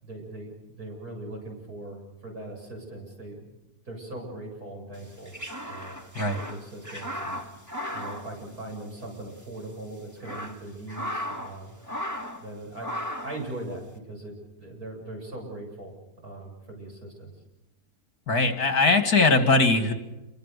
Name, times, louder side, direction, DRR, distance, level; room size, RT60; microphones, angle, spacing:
voice 1, 0.0-3.5 3.9-5.3 5.7-6.0 6.3-7.4 7.9-11.7 12.4-12.9 13.2-15.9 16.2-17.3, right 1 dB, 65° right, -1 dB, 8.6 m, -40 dB
sound 1, 5.0-9.1 9.4-9.5 10.0-11.6 11.8-12.5 12.8-13.4, equal, 10° right, 2.2 m, -36 dB
voice 2, 18.3-19.9, left 3 dB, 65° left, 7 dB, 3.0 m, -20 dB
28.0 x 24.0 x 7.0 m, 0.98 s
omnidirectional pair, 1.7 m